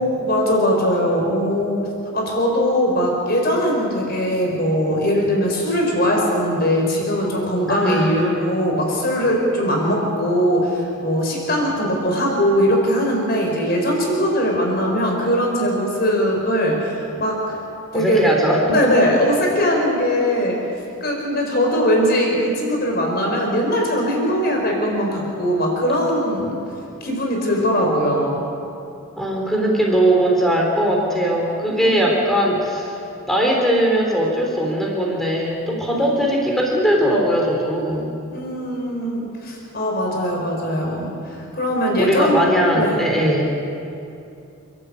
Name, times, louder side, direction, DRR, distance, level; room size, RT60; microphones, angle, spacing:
voice 1, 0.0-1.8 2.1-17.4 17.9-18.3 18.7-20.6 21.0-26.6 27.0-28.4 31.7-32.1 35.9-36.2 38.3-42.5 42.7-43.0, equal, 45° left, 0 dB, 4.7 m, -20 dB
voice 2, 7.7-8.3 17.9-18.7 29.2-33.0 33.2-38.2 42.0-43.5, right 1 dB, ahead, -1 dB, 3.5 m, -19 dB
29.5 x 12.5 x 8.3 m, 2.7 s
head